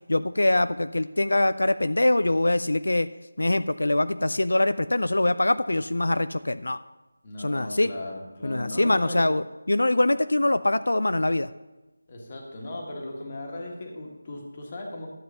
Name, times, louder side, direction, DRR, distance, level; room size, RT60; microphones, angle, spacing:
voice 1, 0.1-3.1 3.4-6.8 7.4-7.9 8.4-11.5, left 2 dB, 80° left, 13 dB, 0.4 m, -23 dB
voice 2, 7.2-9.3 12.1-15.1, left 2 dB, 20° left, 0 dB, 1.5 m, -37 dB
12.5 x 7.7 x 5.5 m, 1.1 s
figure-of-eight pair, 175°, 0 cm